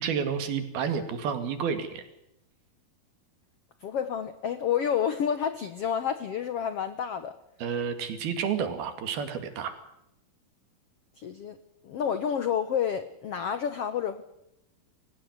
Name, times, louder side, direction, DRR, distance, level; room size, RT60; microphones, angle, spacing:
voice 1, 0.0-2.0 7.6-9.8, right 7 dB, 75° right, 9 dB, 4.2 m, -30 dB
voice 2, 3.8-7.4 11.2-11.6 11.8-14.2, left 8 dB, 85° left, 12 dB, 1.3 m, -29 dB
22.5 x 18.0 x 8.1 m, 0.82 s
omnidirectional pair, 4.5 m